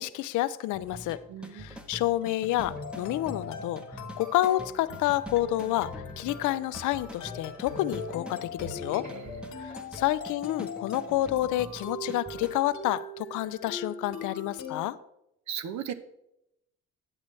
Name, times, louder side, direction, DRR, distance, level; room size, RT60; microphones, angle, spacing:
voice 1, 0.0-1.2 1.5-9.1 9.6-15.0, left 15 dB, 85° left, 15 dB, 0.5 m, -29 dB
sound 1, 0.7-12.5, equal, 5° right, 0.8 m, -45 dB
voice 2, 1.3-1.8 8.9-9.7 15.5-15.9, right 9 dB, 65° right, 11 dB, 0.8 m, -38 dB
sound 2, 2.7-14.8, left 3 dB, 65° left, 1.3 m, -41 dB
9.7 x 7.4 x 3.2 m, 0.82 s
cardioid pair, 90°, 30 cm